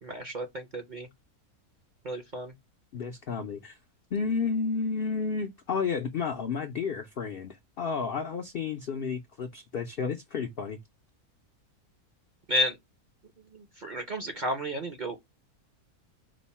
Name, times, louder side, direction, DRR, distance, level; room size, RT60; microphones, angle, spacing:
voice 1, 0.0-1.1 2.0-2.5 12.5-12.8 13.5-15.3, equal, 45° right, 0.6 m, -32 dB
voice 2, 2.9-3.8 4.1-10.8, left 5 dB, 65° left, 0.5 m, -31 dB
5.1 x 2.1 x 4.1 m
omnidirectional pair, 1.6 m